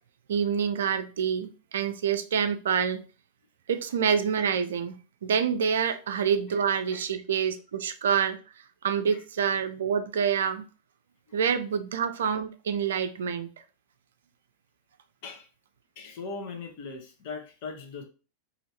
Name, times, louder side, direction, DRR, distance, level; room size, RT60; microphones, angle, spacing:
voice 1, 0.3-3.0 3.7-8.4 8.8-10.7 11.3-13.5, right 7 dB, 65° right, 0.3 m, -27 dB
voice 2, 16.0-18.0, left 4 dB, 45° left, 0.8 m, -39 dB
2.6 x 2.6 x 3.1 m
figure-of-eight pair, 90°, 0 cm